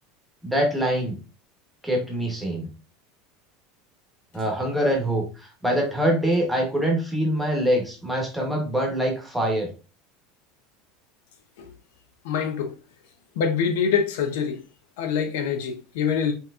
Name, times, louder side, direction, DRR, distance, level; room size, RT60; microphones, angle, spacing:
voice 1, 0.4-1.2 1.8-2.7 4.3-9.7, right 1 dB, ahead, 1.0 m, -24 dB
voice 2, 12.2-12.7 13.4-14.6 15.0-16.3, left 6 dB, 80° left, 0.7 m, -25 dB
5.5 x 2.9 x 2.4 m
cardioid pair, 175°, 0 cm